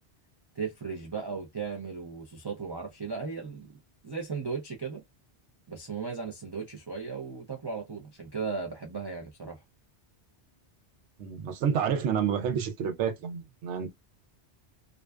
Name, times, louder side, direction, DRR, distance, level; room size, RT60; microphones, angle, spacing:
voice 1, 0.6-3.7 4.0-5.0 5.7-9.6, right 5 dB, 40° right, 0.3 m, -36 dB
voice 2, 11.2-13.9, right 7 dB, 90° right, 0.9 m, -29 dB
2.5 x 2.2 x 2.2 m
omnidirectional pair, 1.2 m